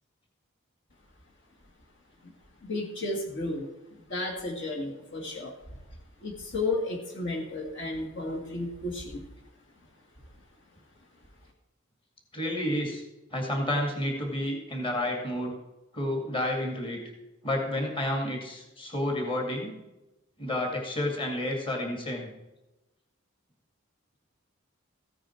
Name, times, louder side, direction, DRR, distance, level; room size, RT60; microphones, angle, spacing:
voice 1, 2.6-5.8 6.2-9.3, left 2 dB, 65° left, 0 dB, 2.2 m, -33 dB
voice 2, 12.3-13.0 13.3-15.6 15.9-17.0 17.4-19.7 20.4-22.3, left 1 dB, 25° left, 1 dB, 2.3 m, -30 dB
15.0 x 9.3 x 4.5 m, 0.98 s
head